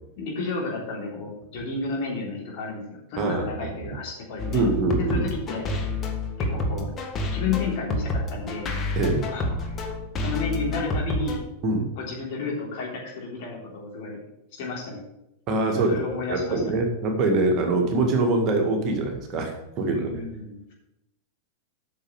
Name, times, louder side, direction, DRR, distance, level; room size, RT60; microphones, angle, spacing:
voice 1, 0.2-4.6 5.0-6.0 6.4-6.9 7.3-8.7 9.3-9.8 10.2-11.4 12.0-14.2 14.5-15.0 15.9-16.6 19.9-20.7, left 3 dB, 45° left, -3 dB, 3.5 m, -32 dB
sound 1, 4.4-11.4, left 2 dB, 25° left, 1.5 m, -29 dB
voice 2, 4.5-5.3 9.0-9.3 11.6-11.9 15.5-16.0 16.3-20.2, right 2 dB, 35° right, 2 dB, 1.9 m, -24 dB
8.6 x 6.4 x 6.5 m, 0.89 s
figure-of-eight pair, 90°, 0 cm